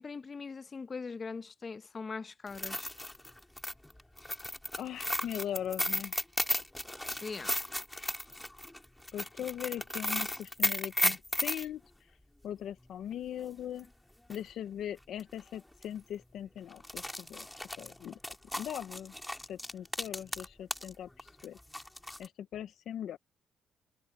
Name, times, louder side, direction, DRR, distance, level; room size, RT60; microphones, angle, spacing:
voice 1, 0.0-2.9 7.2-7.5, left 4 dB, 35° left, 1.0 m, -41 dB
sound 1, 2.5-11.7 13.8-13.9 14.3-14.4 15.2-15.4 15.7-15.8 16.7-20.9 21.2-22.3, left 1 dB, 10° left, 2.2 m, -35 dB
voice 2, 4.8-6.1 9.1-11.8 12.4-13.9 14.3-17.5 17.7-18.2 18.6-19.1 19.5-21.6 22.2-23.2, left 10 dB, 75° left, 1.0 m, -40 dB
cardioid pair, 90°, 0 cm